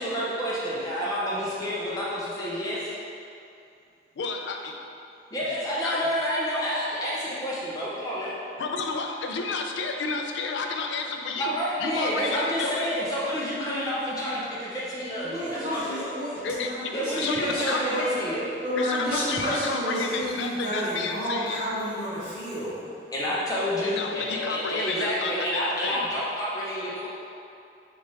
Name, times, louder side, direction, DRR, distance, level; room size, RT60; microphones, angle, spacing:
voice 1, 0.0-2.9 5.3-8.3 11.4-16.1 16.9-18.5 23.1-27.1, equal, 20° left, -7 dB, 0.5 m, -29 dB
voice 2, 4.2-4.7 5.8-6.0 8.6-11.6 11.8-12.9 16.4-16.7 17.1-17.9 18.8-21.6 23.8-26.0, left 4 dB, 90° left, 3 dB, 0.4 m, -31 dB
voice 3, 15.2-18.1 18.6-22.9, equal, 25° right, -14 dB, 1.3 m, -30 dB
3.4 x 2.4 x 4.0 m, 2.5 s
head